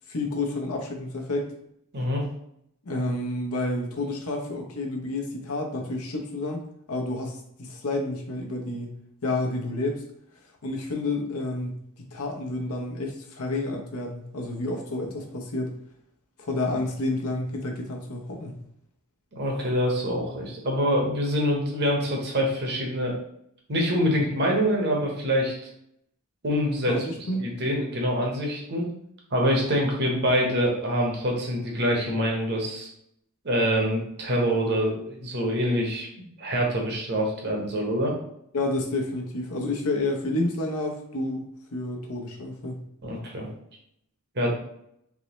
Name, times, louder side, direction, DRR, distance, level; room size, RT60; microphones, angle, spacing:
voice 1, 0.1-1.5 2.8-8.9 9.2-10.0 10.6-15.8 16.4-18.6 26.9-27.5 38.5-41.4 41.7-42.8, left 2 dB, 80° left, 1 dB, 0.8 m, -30 dB
voice 2, 1.9-2.3 19.3-23.2 23.7-25.5 26.4-27.0 27.4-28.9 29.3-32.9 33.4-38.1 43.0-43.5 44.3-44.5, equal, 50° right, -1 dB, 1.0 m, -25 dB
3.6 x 3.1 x 3.0 m, 0.73 s
head